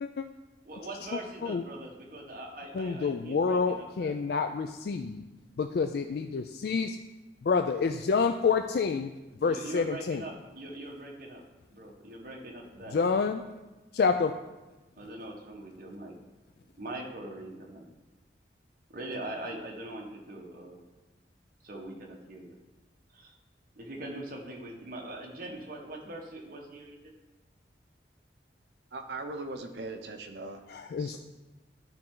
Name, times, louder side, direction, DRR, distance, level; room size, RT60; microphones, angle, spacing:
voice 1, 0.6-4.1 9.4-11.4 11.7-13.0 15.0-16.2 16.8-17.9 18.9-20.8 21.6-22.5 23.1-23.3 23.7-27.1, right 1 dB, 50° right, 0 dB, 1.3 m, -42 dB
voice 2, 2.7-5.2 5.6-7.0 7.4-9.1 9.4-10.2 12.9-13.4 13.9-14.3 30.7-31.2, left 5 dB, 60° left, 7 dB, 0.3 m, -28 dB
voice 3, 28.9-30.6 31.0-31.2, right 2 dB, 70° right, 6 dB, 0.8 m, -39 dB
12.0 x 4.4 x 3.8 m, 1.1 s
head